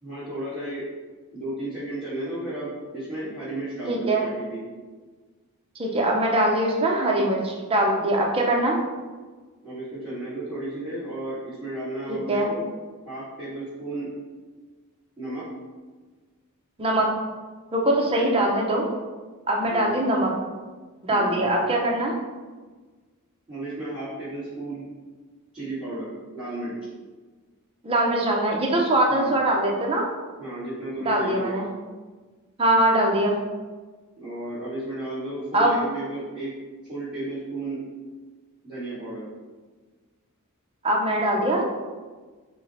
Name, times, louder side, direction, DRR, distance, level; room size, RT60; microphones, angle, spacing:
voice 1, 0.0-0.8 1.3-4.6 9.6-12.6 13.0-14.1 15.2-15.5 18.1-18.3 19.6-19.9 21.1-21.4 23.5-24.8 25.5-26.7 29.1-29.3 30.4-31.5 34.2-36.5 36.9-37.8 38.6-39.3, right 1 dB, 5° right, -14 dB, 1.3 m, -33 dB
voice 2, 3.9-4.3 5.8-8.8 12.1-12.5 16.8-17.1 17.7-18.9 19.5-20.3 21.0-22.1 27.8-30.0 31.0-31.7 32.6-33.4 35.5-35.8 40.8-41.6, right 1 dB, 25° right, -1 dB, 0.6 m, -22 dB
4.3 x 2.1 x 3.9 m, 1.4 s
head